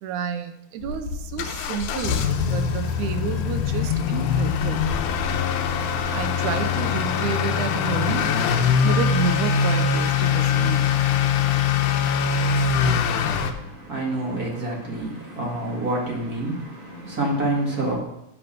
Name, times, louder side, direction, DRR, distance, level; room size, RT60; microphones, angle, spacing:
voice 1, 0.0-4.8 6.1-10.9, right 7 dB, 85° right, 2.2 m, -30 dB
Motor vehicle (road) / Accelerating revving vroom, 0.8-13.5, left 6 dB, 90° left, 2.2 m, -22 dB
voice 2, 12.8-18.0, right 1 dB, 35° right, 2.1 m, -28 dB
8.7 x 5.5 x 6.6 m
omnidirectional pair, 3.4 m